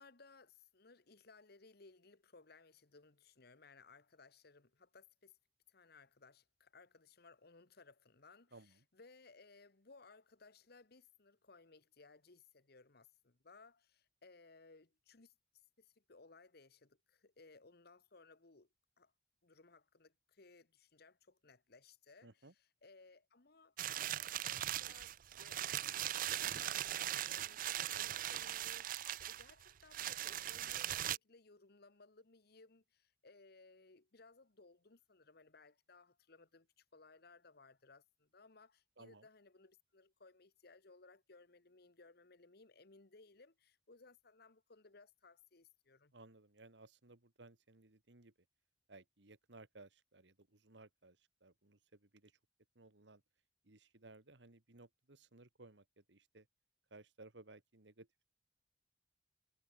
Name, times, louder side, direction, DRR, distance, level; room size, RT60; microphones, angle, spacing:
voice 1, 0.0-5.3 5.7-8.5 8.9-15.3 15.8-18.7 19.0-19.1 19.4-22.3 22.8-46.1, left 3 dB, 60° left, 1.4 m, -63 dB
voice 2, 8.5-8.9 22.2-22.5 39.0-39.3 46.1-48.3 48.9-52.4 52.8-53.2 53.6-56.5 56.9-58.3, right 2 dB, 75° right, 2.0 m, -60 dB
sound 1, 23.8-31.2, right 12 dB, 50° right, 0.4 m, -40 dB
head